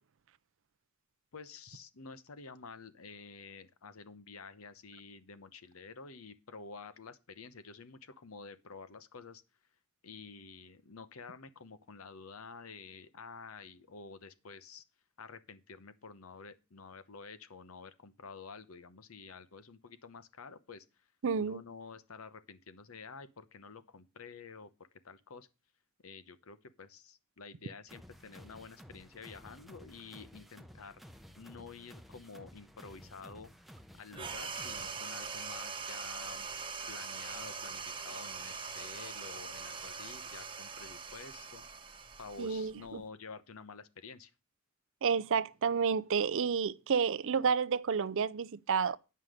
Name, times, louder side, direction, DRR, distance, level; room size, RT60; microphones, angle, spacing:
voice 1, 1.3-9.4 10.0-14.8 15.2-20.8 21.3-24.7 25.0-25.5 26.0-31.0 31.4-33.5 34.0-36.5 36.9-41.6 42.2-44.3, left 4 dB, 85° left, 0.9 m, -50 dB
voice 2, 21.2-21.6 42.4-43.0 45.0-49.0, right 6 dB, 65° right, 0.5 m, -30 dB
sound 1, 27.9-35.0, equal, ahead, 0.8 m, -54 dB
sound 2, 34.1-43.0, right 5 dB, 25° right, 1.1 m, -42 dB
9.6 x 5.5 x 6.4 m
head